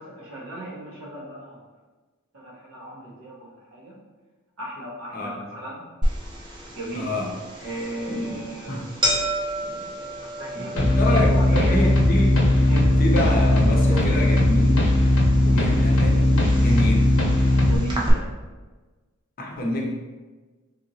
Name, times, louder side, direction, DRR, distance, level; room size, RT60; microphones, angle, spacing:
voice 1, 0.0-1.6 2.3-4.0 4.6-5.9 6.7-7.1 7.6-8.8 9.7-11.9 12.7-13.0 17.6-18.3, right 1 dB, 85° right, -5 dB, 1.1 m, -36 dB
voice 2, 5.1-5.4 6.9-7.3 8.7-8.9 10.6-12.4 13.0-14.9 15.4-17.1 19.4-19.9, left 1 dB, 45° left, -1 dB, 0.6 m, -27 dB
sound 1, 6.0-18.1, equal, 25° right, 0.5 m, -32 dB
sound 2, 10.8-17.8, left 1 dB, 85° left, 0.6 m, -18 dB
3.2 x 2.9 x 2.6 m, 1.3 s
head